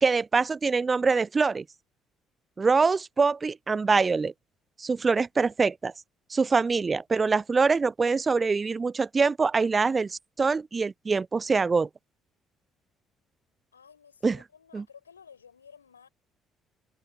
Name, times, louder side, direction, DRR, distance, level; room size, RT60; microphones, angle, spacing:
voice 1, 0.0-1.6 2.6-4.3 4.8-5.9 6.3-11.9 14.2-14.4 14.7-14.8, right 4 dB, 30° right, 0.5 m, -24 dB
voice 2, 13.7-16.1, left 7 dB, 80° left, 5.2 m, -53 dB
figure-of-eight pair, 50°, 0 cm